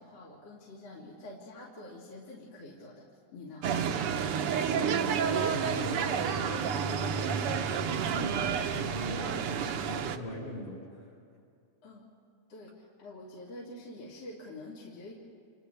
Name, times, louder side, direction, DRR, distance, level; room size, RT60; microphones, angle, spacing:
voice 1, 0.0-3.1 3.3-3.8 11.8-12.1 12.5-15.1, left 2 dB, 50° left, -6 dB, 3.5 m, -47 dB
sound 1, 3.6-10.2, right 7 dB, 80° right, 1.3 m, -30 dB
voice 2, 4.7-11.1, left 1 dB, 75° left, -5 dB, 8.9 m, -40 dB
29.5 x 28.5 x 3.4 m, 2.3 s
omnidirectional pair, 3.6 m